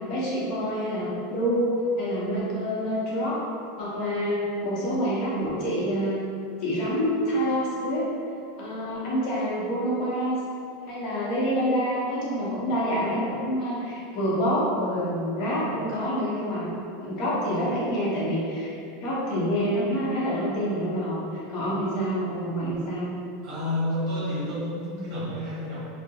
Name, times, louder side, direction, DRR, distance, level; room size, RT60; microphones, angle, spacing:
voice 1, 0.1-3.4 3.8-6.2 6.6-8.1 8.6-10.4 10.9-16.7 17.0-18.7 19.0-23.1, equal, 50° left, -7 dB, 0.7 m, -27 dB
voice 2, 23.4-25.8, left 1 dB, 45° right, -8 dB, 1.0 m, -30 dB
2.2 x 2.0 x 2.8 m, 2.5 s
supercardioid pair, 150°, 0 cm